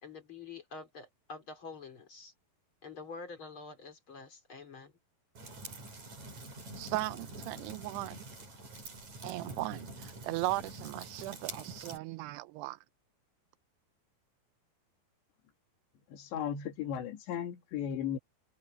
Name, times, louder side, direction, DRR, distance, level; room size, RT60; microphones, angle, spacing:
voice 1, 0.0-2.3 2.8-4.9, left 4 dB, 30° left, 3.8 m, -47 dB
sound 1, 5.4-12.0, right 2 dB, 40° right, 7.5 m, -46 dB
voice 2, 6.8-8.2 9.2-12.8, right 18 dB, 80° right, 2.6 m, -37 dB
voice 3, 16.1-18.2, left 9 dB, 85° left, 4.4 m, -36 dB
omnidirectional pair, 4.9 m